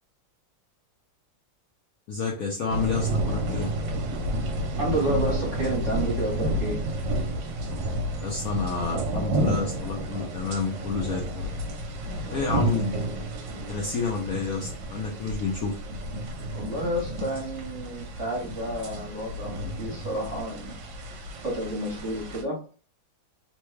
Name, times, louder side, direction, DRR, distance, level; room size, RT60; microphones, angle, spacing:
voice 1, 2.1-3.7 8.2-11.5 12.3-13.0 13.7-15.7, left 4 dB, 70° left, -2 dB, 0.9 m, -29 dB
sound 1, 2.7-22.4, right 1 dB, 70° right, 1.2 m, -31 dB
voice 2, 4.8-6.8 12.2-12.8 16.5-20.8 21.1-22.6, right 1 dB, 45° right, -3 dB, 1.2 m, -30 dB
3.2 x 2.2 x 3.1 m, 0.38 s
omnidirectional pair, 2.1 m